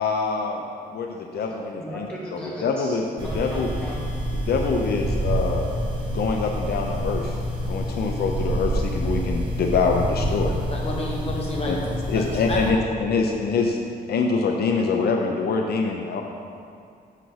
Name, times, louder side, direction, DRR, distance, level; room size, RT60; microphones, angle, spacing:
voice 1, 0.0-2.1 2.6-3.0 3.3-3.7 4.5-5.7 6.1-7.4 7.7-10.5 11.6-11.8 12.1-13.8 14.1-16.2, left 4 dB, 75° left, 2 dB, 0.6 m, -25 dB
voice 2, 1.8-4.3, equal, 5° left, -6 dB, 1.7 m, -37 dB
sound 1, 3.2-12.7, equal, 30° right, 1.4 m, -27 dB
voice 3, 10.4-12.6, left 1 dB, 40° left, -2 dB, 1.4 m, -31 dB
7.2 x 5.7 x 5.6 m, 2.3 s
wide cardioid pair, 170°, 17 cm